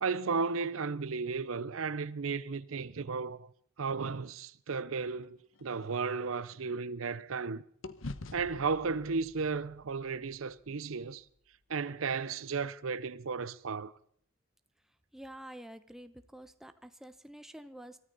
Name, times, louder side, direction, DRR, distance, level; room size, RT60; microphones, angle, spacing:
voice 1, 0.0-3.5 3.8-7.6 8.3-11.2 11.7-13.9, right 4 dB, 70° right, 0.6 m, -34 dB
sound 1, 5.1-7.4 7.8-12.1, left 2 dB, 65° left, 1.0 m, -49 dB
voice 2, 15.1-18.0, right 1 dB, ahead, 0.8 m, -48 dB
22.5 x 14.0 x 4.0 m
head